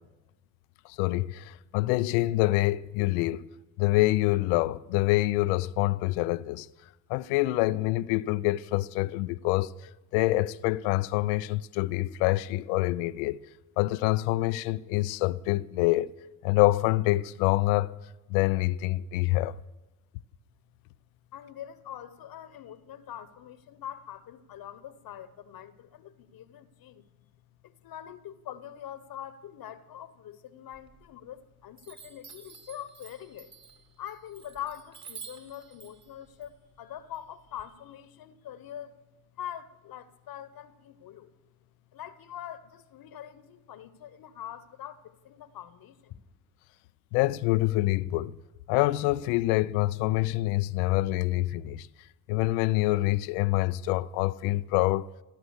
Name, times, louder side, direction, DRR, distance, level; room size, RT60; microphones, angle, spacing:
voice 1, 0.9-3.4 3.8-6.7 7.1-9.7 10.1-13.4 13.8-16.1 16.4-17.9 18.3-19.5 47.1-48.3 48.7-51.9 52.3-55.1, left 18 dB, 70° left, 0.6 m, -26 dB
voice 2, 21.3-27.1 27.6-33.5 34.0-39.0 39.3-41.3 41.9-46.2, left 10 dB, 55° left, 1.1 m, -43 dB
Chime, 30.7-31.4 31.8-37.6, right 6 dB, 40° right, 2.7 m, -50 dB
16.5 x 13.0 x 6.5 m
hypercardioid pair, 50°, 44 cm